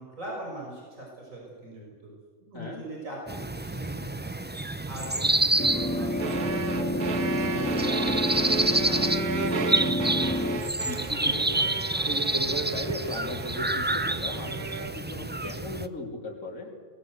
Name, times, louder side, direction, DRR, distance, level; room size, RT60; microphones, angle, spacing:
voice 1, 0.0-2.1 2.4-4.3 4.9-9.4, right 1 dB, 65° right, -2 dB, 6.5 m, -41 dB
sound 1, 3.3-15.9, right 2 dB, 15° right, 0.4 m, -29 dB
sound 2, 5.6-10.6, left 1 dB, 10° left, 1.8 m, -29 dB
sound 3, 6.2-15.0, right 6 dB, 85° right, 1.8 m, -35 dB
voice 2, 10.8-11.8 12.1-16.7, left 1 dB, 65° left, 0 dB, 3.8 m, -36 dB
23.0 x 19.0 x 8.1 m, 1.6 s
omnidirectional pair, 1.5 m